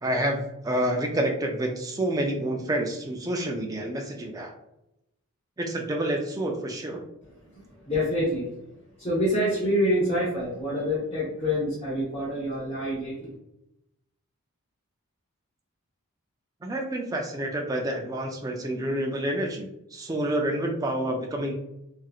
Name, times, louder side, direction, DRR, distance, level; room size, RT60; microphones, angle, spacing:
voice 1, 0.0-4.5 5.6-7.0 16.6-21.5, right 1 dB, 15° right, 2 dB, 0.3 m, -28 dB
voice 2, 7.2-8.5 9.0-13.3, equal, 25° left, -9 dB, 0.9 m, -27 dB
2.8 x 2.4 x 2.3 m, 0.86 s
head